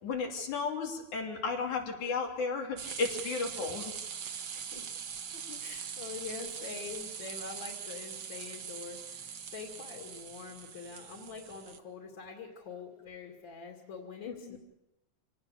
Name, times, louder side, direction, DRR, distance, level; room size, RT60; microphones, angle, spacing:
voice 1, 0.0-3.9 5.5-5.6 14.3-14.6, left 4 dB, 80° left, 1 dB, 4.6 m, -34 dB
sound 1, 2.8-11.8, right 7 dB, 55° right, 1.4 m, -42 dB
voice 2, 4.5-4.8 5.6-14.6, left 5 dB, 40° left, 1 dB, 3.0 m, -45 dB
27.0 x 18.0 x 6.9 m, 0.90 s
omnidirectional pair, 3.3 m